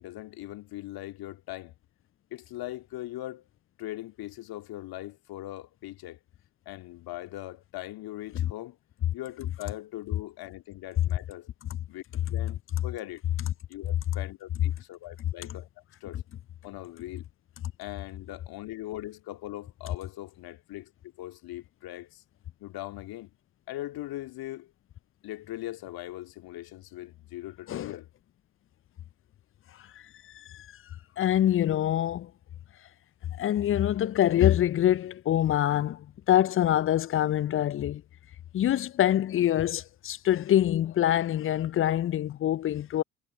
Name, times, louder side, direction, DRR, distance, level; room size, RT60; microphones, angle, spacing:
voice 1, 0.0-1.7 2.3-3.5 3.8-6.2 6.7-8.8 9.1-11.5 11.9-12.0 12.3-13.2 13.7-15.7 16.0-16.2 16.6-17.2 17.8-20.9 21.2-22.2 22.6-23.3 23.7-24.7 25.2-28.1, left 16 dB, 60° left, 2.3 m, -40 dB
voice 2, 30.3-30.7 31.2-32.3 33.4-38.0 38.5-43.0, left 12 dB, 30° left, 0.5 m, -25 dB
figure-of-eight pair, 50°, 41 cm